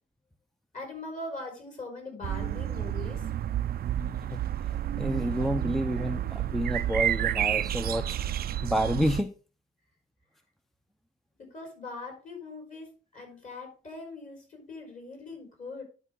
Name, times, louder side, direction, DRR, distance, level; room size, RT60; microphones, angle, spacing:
voice 1, 0.7-3.3 11.4-15.8, left 2 dB, 40° left, 1 dB, 4.3 m, -41 dB
sound 1, 2.2-9.2, right 11 dB, 50° right, 0.4 m, -30 dB
voice 2, 4.3-8.2 8.6-9.3, equal, ahead, 9 dB, 0.5 m, -29 dB
11.0 x 4.8 x 3.6 m, 0.36 s
cardioid pair, 90°, 20 cm